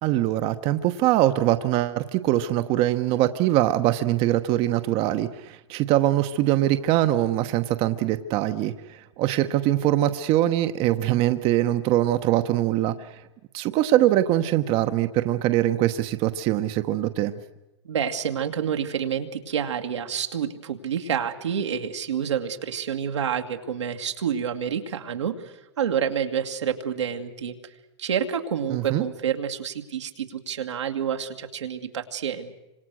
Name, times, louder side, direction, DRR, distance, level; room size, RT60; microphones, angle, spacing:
voice 1, 0.0-13.2 13.5-17.4 28.7-29.0, right 14 dB, 40° right, 9 dB, 1.1 m, -23 dB
voice 2, 17.8-27.6 28.0-32.5, right 8 dB, 90° right, 4 dB, 2.3 m, -28 dB
27.5 x 26.0 x 6.4 m, 0.97 s
hypercardioid pair, 125°, 15 cm